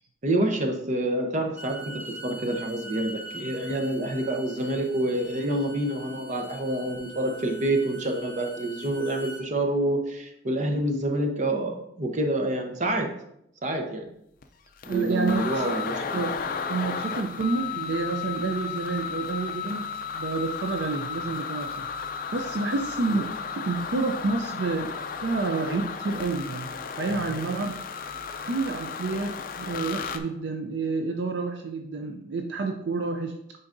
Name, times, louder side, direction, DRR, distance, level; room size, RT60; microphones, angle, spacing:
voice 1, 0.2-13.1 13.6-14.1 14.8-16.0 23.1-23.2, right 1 dB, 40° right, 3 dB, 0.8 m, -27 dB
Bowed string instrument, 1.4-9.5, right 1 dB, 10° right, 0.4 m, -43 dB
sound 1, 14.4-14.5 14.8-30.2, left 6 dB, 45° left, 0.4 m, -34 dB
voice 2, 14.9-15.8 16.1-16.4 16.7-19.9 20.1-21.9 22.3-26.7 27.0-27.8 28.4-33.3, right 3 dB, 65° right, 4 dB, 0.5 m, -29 dB
9.5 x 3.8 x 2.6 m, 0.77 s
head